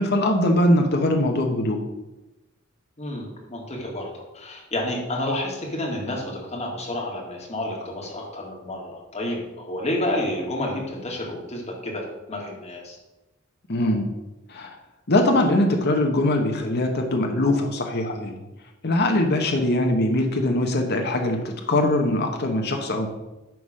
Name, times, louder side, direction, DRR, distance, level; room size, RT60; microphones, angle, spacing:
voice 1, 0.0-1.8 13.7-14.1 14.5-14.7 15.1-18.4 18.8-21.4 21.7-23.1, left 1 dB, 50° left, 3 dB, 1.0 m, -21 dB
voice 2, 3.0-13.0, left 1 dB, 30° left, -1 dB, 2.1 m, -30 dB
10.5 x 3.7 x 6.3 m, 1.0 s
head